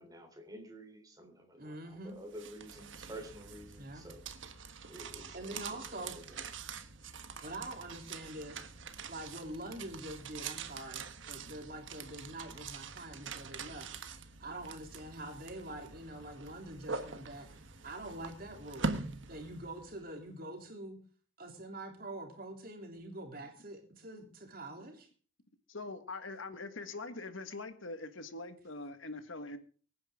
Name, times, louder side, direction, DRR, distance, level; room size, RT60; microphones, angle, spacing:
voice 1, 0.0-4.2 4.9-6.4, right 1 dB, 20° right, 4 dB, 3.6 m, -50 dB
voice 2, 1.6-2.2 3.8-4.0 5.3-6.1 7.4-8.6 9.1-19.0 19.3-21.0 21.4-25.1, right 1 dB, 45° right, 3 dB, 3.3 m, -45 dB
sound 1, 2.1-20.1, right 4 dB, 70° right, 1.4 m, -44 dB
voice 3, 25.7-29.6, left 3 dB, 80° left, 9 dB, 1.7 m, -43 dB
24.0 x 9.6 x 3.7 m, 0.41 s
head